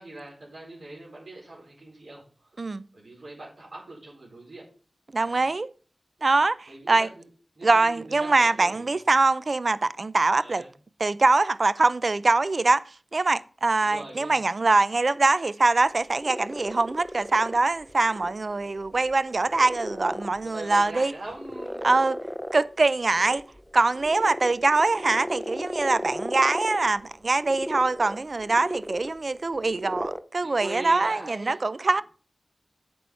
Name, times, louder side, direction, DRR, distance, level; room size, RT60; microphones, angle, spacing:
voice 1, 0.0-2.2 2.9-4.6 5.2-5.4 6.7-7.2 7.5-9.0 10.4-10.7 13.8-14.4 20.4-21.9 30.4-32.0, right 2 dB, 75° right, 4.8 m, -41 dB
voice 2, 5.1-5.7 6.2-7.1 7.6-10.6 11.0-12.8 13.1-21.1 21.8-22.2 22.5-23.4 23.7-32.0, right 3 dB, 55° right, 0.5 m, -23 dB
sound 1, 15.9-30.2, equal, 5° left, 0.6 m, -37 dB
8.6 x 6.2 x 5.6 m
wide cardioid pair, 85°, 0 cm